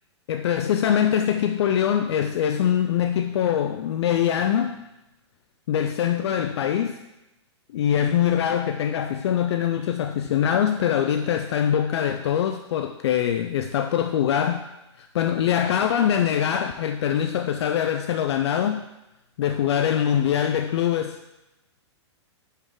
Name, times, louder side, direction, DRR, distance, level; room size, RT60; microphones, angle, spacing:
voice 1, 0.3-4.8 5.7-7.0 7.7-14.6 15.0-18.8 19.4-21.2, left 9 dB, 65° left, 8 dB, 0.4 m, -23 dB
6.2 x 5.5 x 3.7 m, 0.96 s
hypercardioid pair, 140°, 15 cm